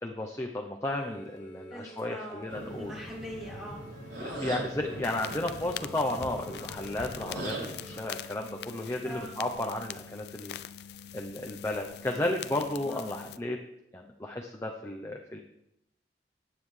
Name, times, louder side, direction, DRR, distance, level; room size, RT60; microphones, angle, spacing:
voice 1, 0.0-2.9 4.2-10.6 11.1-13.6 13.9-15.4, left 1 dB, 15° left, 1 dB, 0.7 m, -33 dB
sound 1, 0.8-8.8, right 2 dB, 40° left, 2.2 m, -51 dB
voice 2, 1.7-2.4 2.8-3.8 4.2-4.5 9.0-9.4 12.8-13.0, equal, ahead, -5 dB, 2.9 m, -42 dB
sound 2, 2.5-8.0, right 1 dB, 75° right, 4.0 m, -41 dB
sound 3, 5.0-13.4, left 9 dB, 70° left, 0.4 m, -43 dB
19.5 x 9.4 x 3.3 m, 0.85 s
head